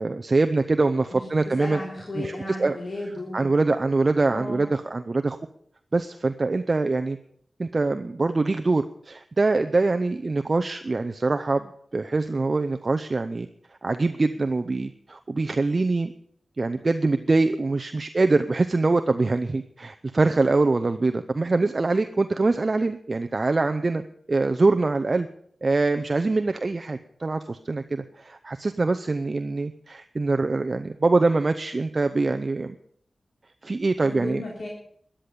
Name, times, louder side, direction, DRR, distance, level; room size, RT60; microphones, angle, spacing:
voice 1, 0.0-1.8 2.2-2.8 3.3-5.4 5.9-7.2 7.6-13.5 13.8-16.1 16.6-24.0 24.3-25.3 25.6-32.7 33.6-34.4, right 3 dB, 40° right, 7 dB, 0.7 m, -24 dB
voice 2, 1.1-3.5 4.3-4.7 34.0-34.7, left 1 dB, 60° left, -3 dB, 3.4 m, -35 dB
13.5 x 10.0 x 6.8 m, 0.64 s
wide cardioid pair, 75°, 0 cm